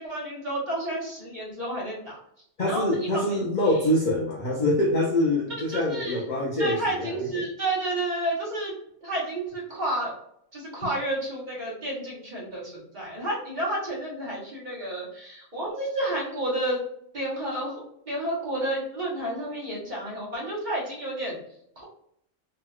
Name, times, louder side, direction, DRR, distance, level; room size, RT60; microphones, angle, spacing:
voice 1, 0.0-2.2 2.7-3.4 3.7-3.8 5.7-6.2 6.6-8.7 9.0-10.1 10.5-16.8 17.1-17.7 18.1-21.4 21.8-21.9, right 1 dB, 40° right, -5 dB, 1.2 m, -30 dB
voice 2, 2.6-7.4, left 1 dB, 55° left, -3 dB, 0.5 m, -25 dB
3.0 x 2.8 x 2.3 m, 0.70 s
omnidirectional pair, 1.4 m